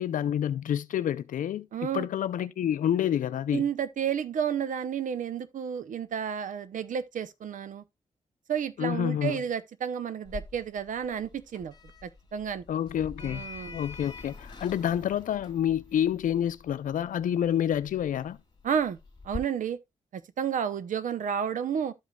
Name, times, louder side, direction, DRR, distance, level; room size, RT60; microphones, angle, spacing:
voice 1, 0.0-1.7 1.9-3.6 8.8-9.4 12.7-13.5 13.7-18.4, left 10 dB, 80° left, 0.5 m, -28 dB
voice 2, 1.7-2.1 3.5-7.8 8.5-11.7 12.0-12.7 13.2-13.8 18.6-19.0 19.2-19.8 20.1-21.9, right 8 dB, 75° right, 0.7 m, -31 dB
Sliding door, 10.3-19.4, left 4 dB, 35° left, 2.5 m, -46 dB
13.0 x 5.2 x 2.3 m
cardioid pair, 90°, 13 cm